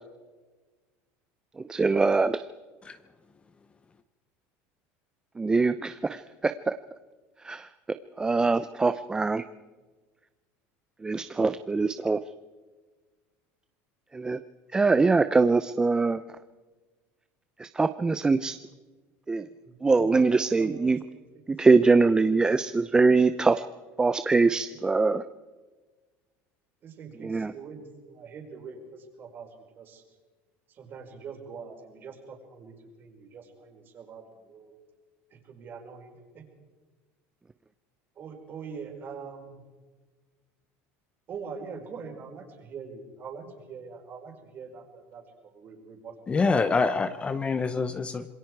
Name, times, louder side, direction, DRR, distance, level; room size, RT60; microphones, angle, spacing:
voice 1, 1.7-2.4 5.4-6.7 7.4-7.7 8.2-9.4 11.0-12.2 14.1-14.4 14.7-16.2 17.6-18.6 19.3-19.4 19.8-21.0 21.5-23.6 24.0-25.2 27.2-27.5, right 4 dB, 15° right, 11 dB, 0.6 m, -23 dB
voice 2, 19.6-20.3 20.6-20.8 21.1-21.2 24.7-24.8 26.8-29.5 29.8-30.0 30.7-32.7 33.0-34.7 35.3-36.4 38.2-39.6 41.3-46.4 46.7-46.9, right 5 dB, 35° right, 2 dB, 5.0 m, -43 dB
voice 3, 46.3-48.3, left 4 dB, 20° left, 11 dB, 0.8 m, -26 dB
26.5 x 21.5 x 4.7 m, 1.3 s
cardioid pair, 140°, 6 cm